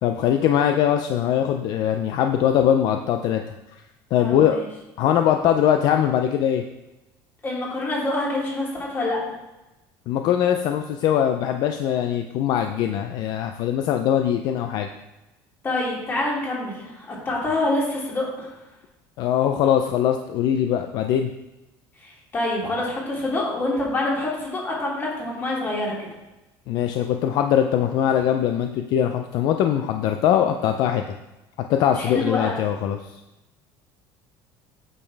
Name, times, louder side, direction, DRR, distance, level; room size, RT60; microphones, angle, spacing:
voice 1, 0.0-3.4 4.1-4.6 5.0-6.6 10.1-14.9 19.2-21.3 26.7-31.0 31.7-33.0, left 10 dB, 55° left, 6 dB, 0.5 m, -21 dB
voice 2, 4.2-4.6 7.4-9.2 15.6-18.5 22.0-26.1 32.0-32.6, left 2 dB, 25° left, -4 dB, 2.8 m, -26 dB
8.8 x 6.5 x 3.4 m, 1.0 s
cardioid pair, 140°, 8 cm